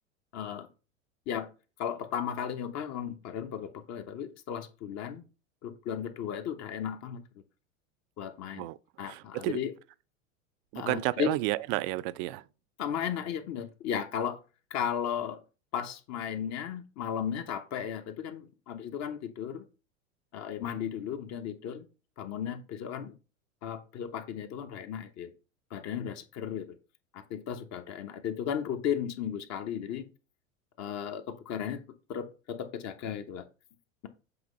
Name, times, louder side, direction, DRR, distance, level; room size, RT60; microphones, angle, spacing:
voice 1, 0.3-0.7 1.3-1.5 1.8-5.2 5.6-7.2 8.2-8.7 9.0-9.7 10.7-11.4 12.8-14.4 14.7-15.4 15.7-19.6 20.3-21.9 22.2-23.1 23.6-25.3 25.7-26.7 27.1-30.1 30.8-31.8 32.1-33.4, left 8 dB, 40° left, 1.1 m, -35 dB
voice 2, 9.0-9.6 10.7-12.4, right 18 dB, 45° right, 0.5 m, -31 dB
7.8 x 3.0 x 5.3 m
hypercardioid pair, 100°, 39 cm